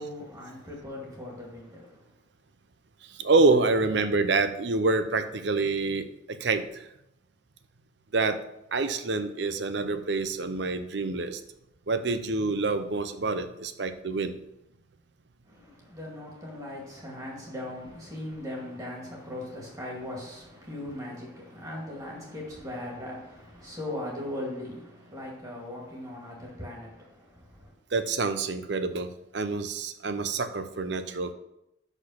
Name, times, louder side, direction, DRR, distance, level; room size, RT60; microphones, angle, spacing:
voice 1, 0.0-2.1 15.5-27.7, left 1 dB, 20° right, -3 dB, 2.2 m, -39 dB
voice 2, 3.1-6.8 8.1-8.4 8.7-11.4 11.9-14.3 27.9-31.3, right 3 dB, 65° right, 10 dB, 0.6 m, -27 dB
6.2 x 5.4 x 5.8 m, 0.84 s
head